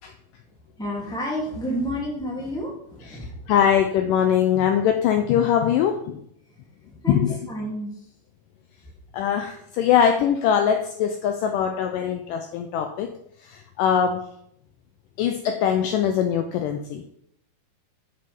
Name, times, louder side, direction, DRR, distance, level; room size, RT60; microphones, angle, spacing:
voice 1, 0.8-3.5 7.0-7.9, equal, ahead, -3 dB, 1.9 m, -30 dB
voice 2, 3.5-6.2 7.1-7.4 9.1-13.1 13.4-14.3 15.2-17.0, left 8 dB, 85° left, 6 dB, 1.9 m, -22 dB
9.9 x 8.7 x 3.5 m, 0.71 s
omnidirectional pair, 4.5 m